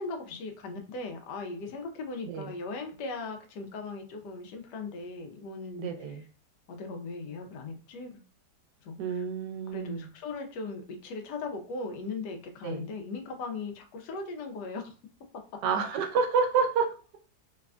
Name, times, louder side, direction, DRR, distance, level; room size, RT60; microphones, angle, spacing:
voice 1, 0.0-6.3 6.7-8.2 8.8-9.2 9.7-14.9, left 3 dB, 80° left, 4 dB, 1.2 m, -38 dB
voice 2, 5.8-6.2 9.0-10.0 12.6-12.8 15.6-16.9, right 5 dB, 80° right, 6 dB, 1.2 m, -28 dB
3.2 x 2.1 x 2.4 m, 0.36 s
omnidirectional pair, 1.8 m